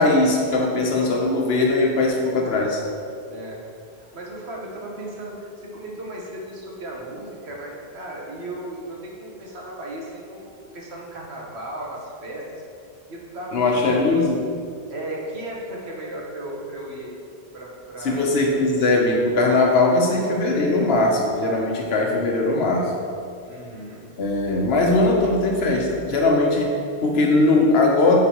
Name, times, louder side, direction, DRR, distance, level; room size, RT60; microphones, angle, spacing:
voice 1, 0.0-2.8 13.5-14.5 18.0-22.9 24.2-28.2, left 2 dB, 75° left, 0 dB, 1.1 m, -20 dB
voice 2, 3.3-3.6 3.9-12.6 13.1-14.3 14.9-17.1 17.5-18.9 23.5-24.1, right 1 dB, 80° right, -3 dB, 1.4 m, -36 dB
9.3 x 3.9 x 3.0 m, 2.4 s
omnidirectional pair, 1.1 m